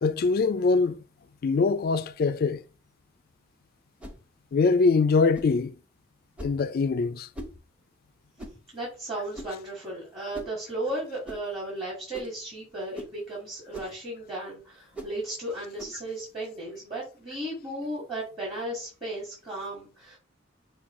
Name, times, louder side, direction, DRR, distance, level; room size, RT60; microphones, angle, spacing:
voice 1, 0.0-1.0 1.4-2.6 4.5-5.7 6.4-7.3, left 4 dB, 50° left, 0.3 m, -23 dB
sound 1, 4.0-4.2 5.3-5.6 6.4-6.6 7.3-7.6 8.4-8.6 9.3-9.6 10.3-10.6 11.2-11.4 12.1-12.4 12.9-13.2 13.7-14.0 14.9-15.2 15.8-16.0, right 1 dB, 5° right, 0.7 m, -41 dB
voice 2, 8.7-20.2, right 1 dB, 30° right, 1.8 m, -35 dB
5.8 x 2.3 x 3.7 m
head